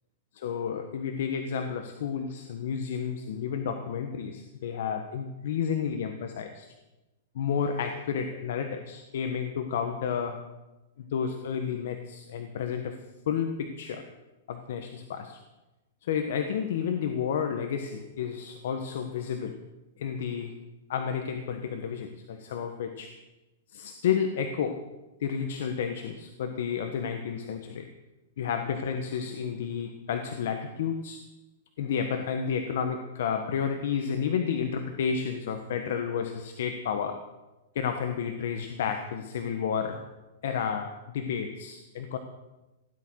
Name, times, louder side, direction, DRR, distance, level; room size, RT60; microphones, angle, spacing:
voice 1, 0.3-6.7 7.3-10.5 11.0-13.0 13.3-14.0 14.5-15.4 16.0-19.6 20.0-20.5 20.9-23.2 23.7-24.9 25.2-27.9 28.4-31.2 31.8-37.3 37.7-40.0 40.4-42.2, left 7 dB, 65° left, 7 dB, 1.4 m, -31 dB
17.0 x 11.0 x 6.4 m, 1.0 s
supercardioid pair, 165°, 0 cm